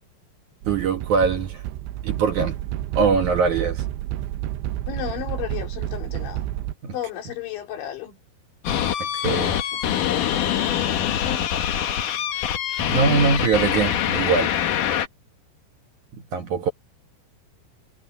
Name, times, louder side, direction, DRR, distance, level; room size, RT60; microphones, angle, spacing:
sound 1, 0.6-6.7, right 13 dB, 90° right, 3.2 m, -30 dB
voice 1, 0.7-1.6 2.0-2.5 2.9-3.8 6.8-6.9 9.1-9.5 12.9-14.5 16.1-16.7, right 5 dB, 55° right, 2.3 m, -22 dB
voice 2, 4.9-6.4 6.9-8.2 9.2-10.7 11.2-11.5, left 11 dB, 85° left, 5.5 m, -34 dB
sound 2, 8.6-15.1, left 10 dB, 60° left, 2.5 m, -24 dB
omnidirectional pair, 5.1 m